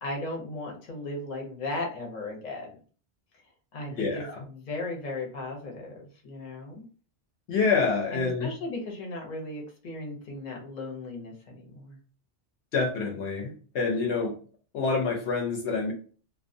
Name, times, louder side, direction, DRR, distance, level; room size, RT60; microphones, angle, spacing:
voice 1, 0.0-2.8 3.7-6.8 8.1-12.0, left 2 dB, 45° left, 0 dB, 0.7 m, -36 dB
voice 2, 3.9-4.4 7.5-8.5 12.7-14.4 14.7-15.9, left 4 dB, 75° left, 1 dB, 0.8 m, -27 dB
2.3 x 2.1 x 2.5 m, 0.40 s
omnidirectional pair, 1.2 m